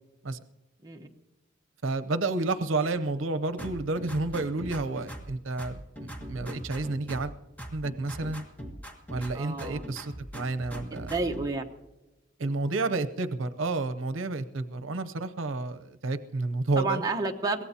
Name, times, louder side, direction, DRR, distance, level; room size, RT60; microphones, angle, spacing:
voice 1, 1.8-5.8 6.3-7.3 7.7-8.4 9.1-11.1 12.4-17.0, right 3 dB, 85° right, 11 dB, 0.7 m, -30 dB
sound 1, 3.6-5.3 5.6-7.3 7.6-9.3 9.6-11.5, equal, 10° left, 1.7 m, -40 dB
voice 2, 9.3-9.9 11.1-11.6 16.8-17.6, right 3 dB, 20° right, 2 dB, 1.0 m, -30 dB
23.0 x 17.5 x 2.8 m, 1.0 s
head